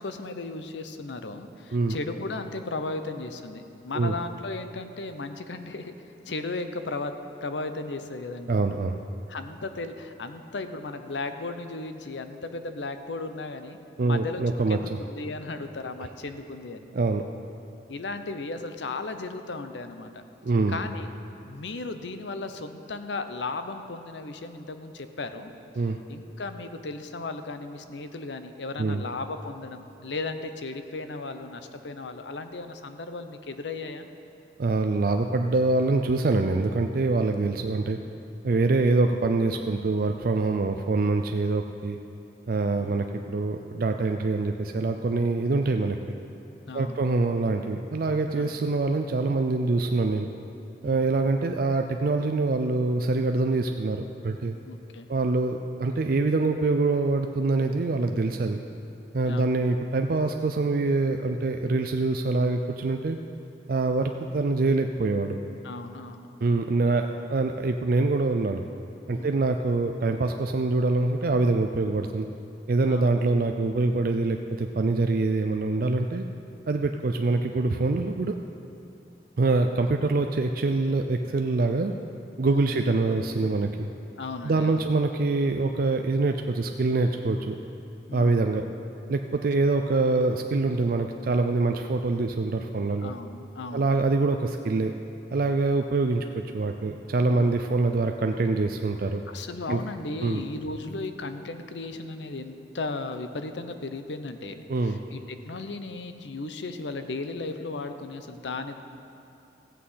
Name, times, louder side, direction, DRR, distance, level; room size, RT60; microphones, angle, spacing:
voice 1, 0.0-5.9 6.3-7.1 7.4-8.5 9.3-14.4 14.7-16.9 17.9-20.2 20.7-21.2 21.5-25.5 26.1-34.1 42.8-43.0 46.6-47.0 48.3-48.5 50.8-51.1 54.6-55.1 59.3-59.5 65.6-66.3 69.1-69.4 72.8-73.1 82.5-83.0 84.2-84.9 88.1-88.4 93.0-93.9 97.3-97.6 99.3-108.8, left 3 dB, 90° left, 8 dB, 0.7 m, -36 dB
voice 2, 8.5-9.0 14.0-15.0 16.9-17.2 20.4-20.8 25.8-26.0 28.8-29.0 34.6-38.0 38.4-42.0 42.5-46.0 46.7-50.3 50.8-54.6 55.1-58.6 59.1-63.2 63.7-65.4 66.4-68.7 69.1-72.3 72.7-76.2 76.7-78.3 79.4-81.9 82.4-83.9 84.4-87.6 88.1-88.7 89.1-93.1 93.7-94.9 95.3-99.2 99.7-99.8 100.2-100.4 104.7-105.0, right 3 dB, 55° right, 5 dB, 0.4 m, -25 dB
15.0 x 8.4 x 5.6 m, 2.7 s
head